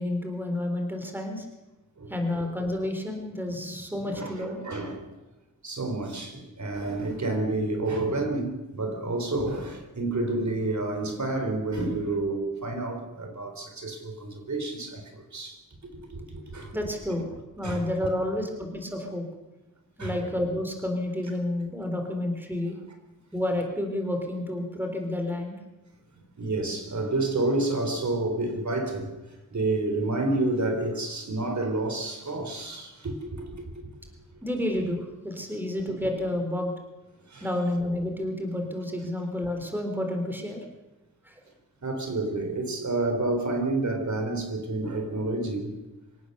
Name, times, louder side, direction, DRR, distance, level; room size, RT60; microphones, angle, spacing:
voice 1, 0.0-1.5 2.1-4.6 16.7-17.3 17.6-19.3 20.0-22.8 23.3-25.6 34.4-36.7 37.4-40.6 41.2-41.3, left 1 dB, 5° right, 4 dB, 3.8 m, -30 dB
voice 2, 2.0-2.4 4.1-5.1 5.6-15.6 15.9-16.8 17.6-17.9 20.0-20.2 26.4-29.1 29.5-33.9 37.3-37.5 41.8-45.7, right 2 dB, 55° right, 5 dB, 4.1 m, -29 dB
25.5 x 18.0 x 6.9 m, 1.0 s
wide cardioid pair, 125°, 34 cm